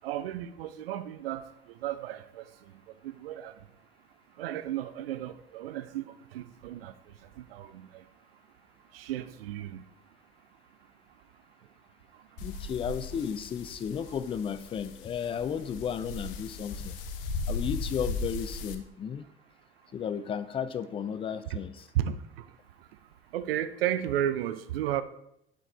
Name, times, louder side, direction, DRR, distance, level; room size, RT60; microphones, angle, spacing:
voice 1, 0.0-1.4 1.8-2.5 3.0-3.5 4.4-6.9 7.4-8.0 8.9-9.8 21.9-22.5 23.3-25.0, right 11 dB, 70° right, 0.5 m, -33 dB
sound 1, 12.4-18.7, left 3 dB, 65° left, 0.6 m, -37 dB
voice 2, 12.4-17.0 17.5-19.2 19.9-21.9, left 7 dB, 20° left, 0.4 m, -34 dB
7.6 x 4.4 x 3.3 m
figure-of-eight pair, 60°, 30 cm